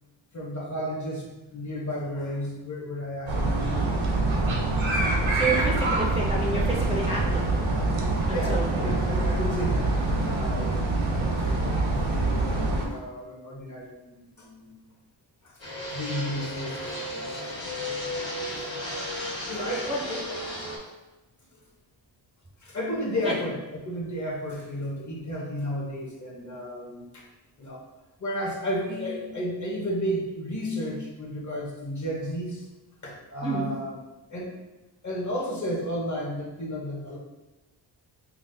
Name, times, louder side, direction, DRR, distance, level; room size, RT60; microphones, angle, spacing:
voice 1, 0.3-4.0 8.0-10.8 11.1-14.8 15.4-15.6 15.9-17.9 18.6-18.7 19.5-20.3 22.6-23.6 23.8-27.2 27.6-27.8 28.2-32.7 33.0-33.9 34.3-34.5 35.0-37.2, equal, 40° left, -2 dB, 0.8 m, -33 dB
sound 1, 3.3-12.9, right 2 dB, 80° right, 0.8 m, -25 dB
voice 2, 5.3-7.6 8.3-8.7 19.9-20.0 23.2-23.4 33.4-33.7, right 2 dB, 15° right, -4 dB, 0.3 m, -29 dB
Fixed-wing aircraft airplane, 15.6-20.8, left 1 dB, 70° left, 1.4 m, -34 dB
5.6 x 2.1 x 2.6 m, 1.1 s
wide cardioid pair, 145°, 46 cm